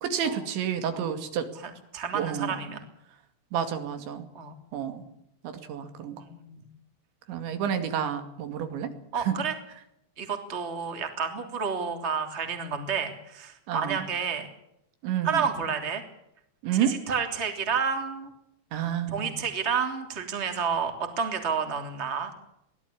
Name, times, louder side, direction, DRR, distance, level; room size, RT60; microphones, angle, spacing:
voice 1, 0.0-1.5 2.1-2.6 3.5-4.3 4.7-5.0 5.7-6.2 7.3-9.4 13.7-14.0 15.0-15.4 16.6-16.9 18.7-19.4, right 9 dB, 80° right, 8 dB, 4.6 m, -30 dB
voice 2, 1.5-2.8 4.3-4.5 6.2-6.6 9.1-9.5 10.2-14.5 15.2-16.0 16.7-18.3 19.1-22.3, right 6 dB, 15° right, 6 dB, 2.8 m, -30 dB
23.0 x 17.0 x 8.7 m, 0.78 s
omnidirectional pair, 5.2 m